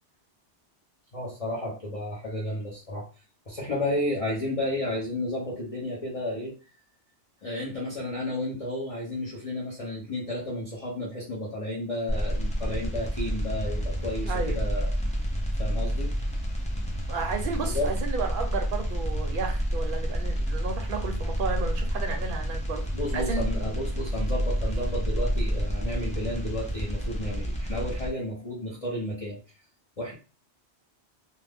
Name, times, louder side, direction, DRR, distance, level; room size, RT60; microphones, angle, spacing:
voice 1, 1.1-3.1 3.5-6.5 7.4-14.9 15.6-16.1 17.6-17.9 22.9-29.4 30.0-30.1, left 1 dB, 35° left, -5 dB, 0.7 m, -32 dB
sound 1, 12.1-28.1, equal, 10° left, 0.4 m, -29 dB
voice 2, 14.3-14.6 17.1-22.8 23.1-23.5, right 5 dB, 55° right, 4 dB, 0.7 m, -32 dB
2.5 x 2.1 x 3.3 m, 0.35 s
omnidirectional pair, 1.2 m